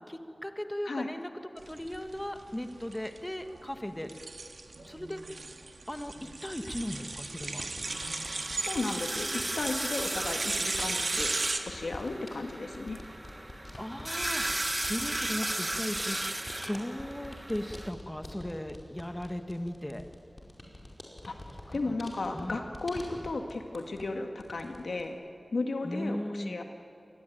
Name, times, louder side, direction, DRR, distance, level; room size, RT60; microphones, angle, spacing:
voice 1, 0.1-1.3 1.7-4.1 4.9-5.4 5.9-6.1 6.4-7.7 13.8-16.4 16.7-20.0 21.7-22.0 22.3-22.6 25.8-26.6, left 1 dB, 15° left, 6 dB, 1.7 m, -37 dB
sound 1, 1.6-11.6, right 3 dB, 70° right, 1.9 m, -36 dB
sound 2, 6.6-24.1 24.4-25.1, left 1 dB, 40° left, 5.1 m, -47 dB
sound 3, 7.9-17.9, right 1 dB, 25° right, 1.3 m, -36 dB
voice 2, 8.7-11.3 11.7-13.0 21.3-21.4 21.7-25.2 25.5-26.6, left 3 dB, 90° left, 4 dB, 1.8 m, -34 dB
26.5 x 20.5 x 9.3 m, 2.7 s
wide cardioid pair, 45°, 0 cm